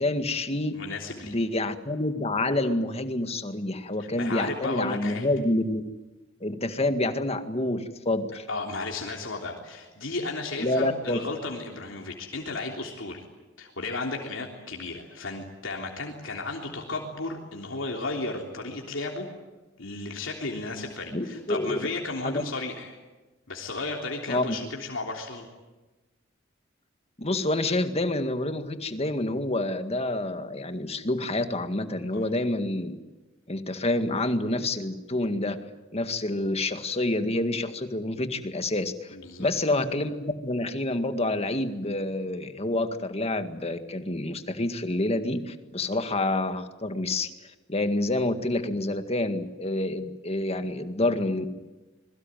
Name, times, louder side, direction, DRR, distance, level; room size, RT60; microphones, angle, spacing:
voice 1, 0.0-0.8 1.2-5.8 6.4-8.5 10.6-11.2 21.1-21.8 22.2-22.4 24.3-24.6 27.2-33.0 33.5-35.6 35.9-47.3 47.7-51.5, left 2 dB, 30° left, 8 dB, 1.9 m, -28 dB
voice 2, 0.7-1.4 4.0-5.3 8.5-13.2 13.6-19.3 19.8-23.0 23.5-25.5 32.1-32.2 39.1-39.5, left 3 dB, 70° left, 0 dB, 3.5 m, -34 dB
26.5 x 22.0 x 9.1 m, 1.1 s
head